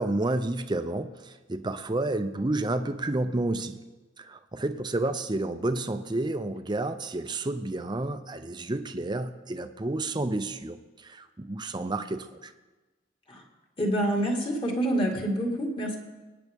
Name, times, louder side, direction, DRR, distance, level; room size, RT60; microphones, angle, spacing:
voice 1, 0.0-3.8 4.2-10.8 11.0-12.5, right 2 dB, 25° right, 9 dB, 0.6 m, -30 dB
voice 2, 13.8-16.0, right 1 dB, 30° left, 1 dB, 2.0 m, -27 dB
25.0 x 9.5 x 3.6 m, 1.2 s
head